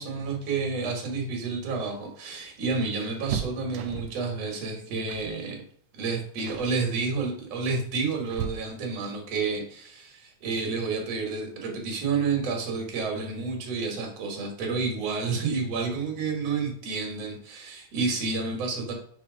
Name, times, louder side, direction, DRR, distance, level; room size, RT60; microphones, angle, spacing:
voice 1, 0.0-5.6 5.9-18.9, right 4 dB, 60° right, 1 dB, 2.4 m, -30 dB
sound 1, 1.6-4.3 5.1-5.4 5.7-6.0 6.4-6.8 7.6-9.1 10.8-10.9 11.3-11.4 12.6-13.0 13.3-13.4 13.7-13.9, right 9 dB, 80° right, 1.6 m, -37 dB
4.9 x 4.5 x 5.0 m, 0.63 s
omnidirectional pair, 3.6 m